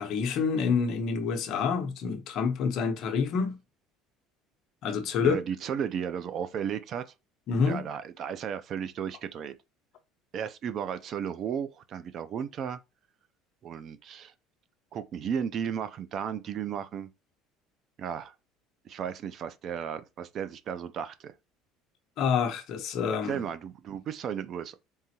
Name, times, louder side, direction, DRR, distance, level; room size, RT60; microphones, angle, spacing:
voice 1, 0.0-3.6 4.8-5.4 7.5-7.8 22.2-23.4, left 6 dB, 50° left, 0.9 m, -27 dB
voice 2, 5.2-7.1 7.7-9.5 10.3-12.8 13.6-14.3 14.9-17.1 18.0-18.3 18.8-21.3 23.2-24.8, right 8 dB, 40° right, 0.5 m, -34 dB
4.1 x 3.8 x 2.8 m
cardioid pair, 145°, 0 cm